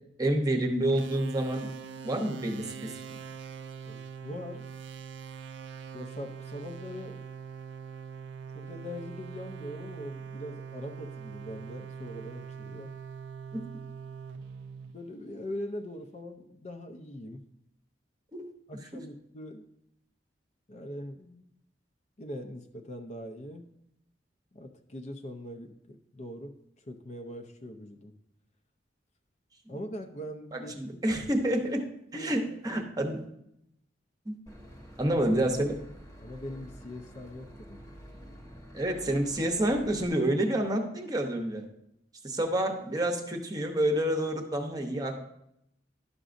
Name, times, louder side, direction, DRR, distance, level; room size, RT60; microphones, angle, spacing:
voice 1, 0.2-1.7 2.0-3.2 13.5-13.6 18.3-18.5 29.7-29.8 30.5-31.8 32.1-33.2 34.3-34.4 35.0-35.8 38.7-41.7 42.2-45.2, right 1 dB, 20° right, 4 dB, 0.8 m, -28 dB
sound 1, 0.9-15.5, right 6 dB, 75° right, 0.4 m, -43 dB
voice 2, 3.9-4.7 5.9-7.2 8.5-12.9 14.9-17.4 18.7-19.7 20.7-21.5 22.2-23.6 24.5-28.1 29.7-30.8 32.1-32.3 32.7-32.9 36.2-37.8, left 1 dB, 40° left, 5 dB, 0.6 m, -42 dB
Boat Water vehicle / Engine, 34.5-40.1, equal, 15° left, 1.1 m, -48 dB
11.0 x 6.1 x 2.5 m, 0.78 s
head